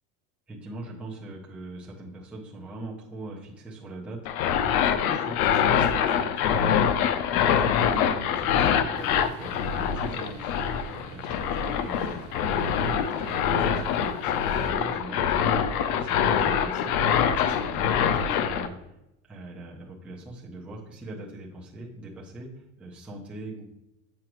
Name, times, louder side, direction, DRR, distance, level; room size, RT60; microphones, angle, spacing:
voice 1, 0.5-6.8 7.3-12.2 12.6-15.6 15.9-17.0 17.3-18.8 19.3-23.6, right 1 dB, 5° right, -4 dB, 0.4 m, -41 dB
sound 1, 4.3-18.7, left 8 dB, 85° left, 0.6 m, -24 dB
sound 2, 8.9-14.7, right 5 dB, 55° right, 1.1 m, -46 dB
7.6 x 4.9 x 3.0 m, 0.90 s
cardioid pair, 170°, 42 cm